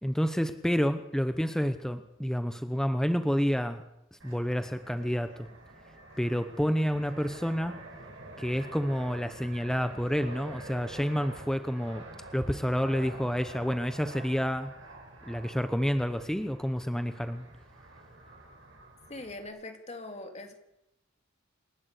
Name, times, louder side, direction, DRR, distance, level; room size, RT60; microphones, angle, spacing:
voice 1, 0.0-3.8 4.1-5.5 6.2-7.8 8.4-12.0 12.3-14.7 15.3-17.5, equal, 5° left, 9 dB, 0.8 m, -29 dB
Fixed-wing aircraft airplane, 4.2-19.5, right 2 dB, 80° right, 5.9 m, -48 dB
voice 2, 19.1-20.5, left 2 dB, 35° left, 5 dB, 2.8 m, -41 dB
27.5 x 12.0 x 8.2 m, 0.85 s
head